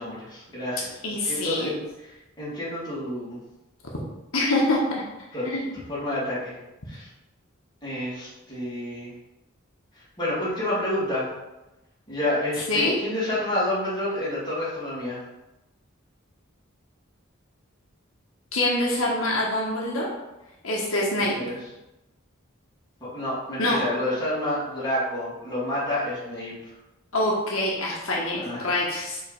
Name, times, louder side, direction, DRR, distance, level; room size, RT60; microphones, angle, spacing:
voice 1, 0.0-0.9 1.2-2.1 2.4-3.4 5.3-5.5 5.9-6.5 6.9-7.1 7.8-9.1 10.2-11.3 12.1-15.2 21.4-21.6 23.0-26.5 28.3-28.7, left 1 dB, 20° left, -9 dB, 2.3 m, -29 dB
voice 2, 1.0-1.7 4.3-5.0 5.4-5.7 12.7-13.0 18.5-20.1 20.6-21.3 23.6-23.8 27.1-29.2, left 1 dB, 75° left, -3 dB, 1.3 m, -25 dB
5.0 x 3.8 x 5.2 m, 0.99 s
head